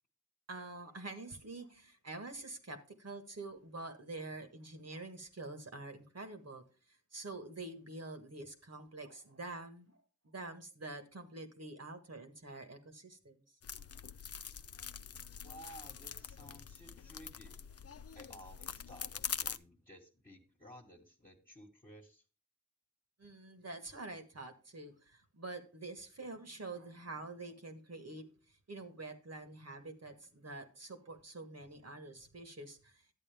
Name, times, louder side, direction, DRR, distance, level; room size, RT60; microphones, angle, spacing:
voice 1, 0.5-6.6 6.9-10.0 10.2-13.4 23.2-33.0, right 2 dB, 55° right, 1.5 m, -47 dB
sound 1, 13.6-19.6, left 7 dB, 50° left, 0.5 m, -44 dB
voice 2, 15.4-17.7 18.1-22.2, equal, 25° left, 1.5 m, -55 dB
11.0 x 8.3 x 3.5 m
cardioid pair, 40°, 31 cm